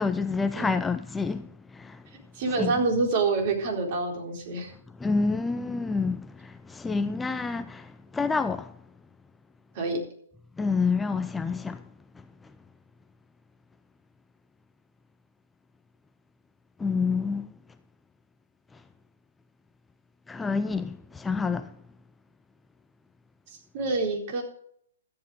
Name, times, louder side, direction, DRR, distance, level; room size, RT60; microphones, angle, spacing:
voice 1, 0.0-2.0 2.6-2.8 5.0-8.7 10.6-11.8 16.8-17.5 20.3-21.7, left 4 dB, 10° left, 0.5 m, -28 dB
voice 2, 2.4-4.7 9.7-10.0 23.7-24.4, right 3 dB, 50° right, 4.1 m, -27 dB
13.5 x 9.0 x 5.0 m
hypercardioid pair, 130°, 0 cm